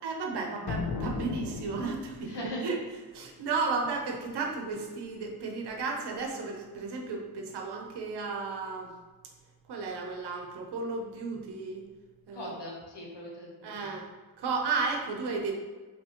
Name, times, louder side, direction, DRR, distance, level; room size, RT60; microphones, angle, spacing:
voice 1, 0.0-2.8 3.1-8.9 9.7-11.8 12.3-12.5 13.6-14.1 14.4-15.5, right 4 dB, 80° right, 1 dB, 0.9 m, -33 dB
sound 1, 0.7-2.4, left 5 dB, 65° left, 0.6 m, -35 dB
voice 2, 2.2-2.7 12.3-13.8, left 1 dB, 90° left, -3 dB, 1.4 m, -39 dB
5.7 x 3.2 x 3.0 m, 1.3 s
wide cardioid pair, 160°, 40 cm